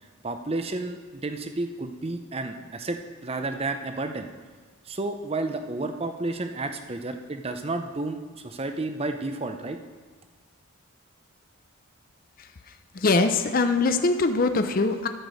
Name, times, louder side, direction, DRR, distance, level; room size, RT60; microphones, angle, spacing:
voice 1, 0.2-4.3 4.9-9.8, right 2 dB, 25° right, 7 dB, 0.6 m, -31 dB
voice 2, 12.9-15.1, left 3 dB, 40° left, 8 dB, 0.5 m, -22 dB
13.0 x 5.1 x 6.3 m, 1.4 s
head